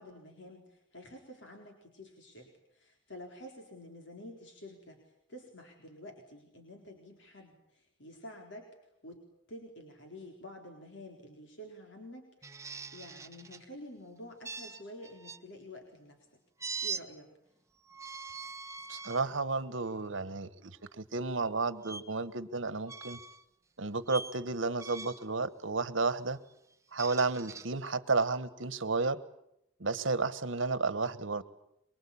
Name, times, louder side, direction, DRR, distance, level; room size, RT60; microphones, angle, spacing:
voice 1, 0.0-5.0 5.3-8.7 9.0-9.2 9.5-16.4 16.8-17.3, left 1 dB, 60° left, 2 dB, 4.2 m, -49 dB
sound 1, 12.4-13.6 14.4-15.4 16.6-17.0 17.9-19.2 19.8-20.0 21.8-22.0 22.9-23.4 24.1-24.4 24.8-25.3 26.7-27.7, right 5 dB, 15° right, 0.9 m, -42 dB
voice 2, 18.9-23.2 23.8-26.4 26.9-29.2 29.8-31.4, right 3 dB, 70° right, 14 dB, 1.3 m, -32 dB
24.0 x 24.0 x 8.7 m, 0.79 s
head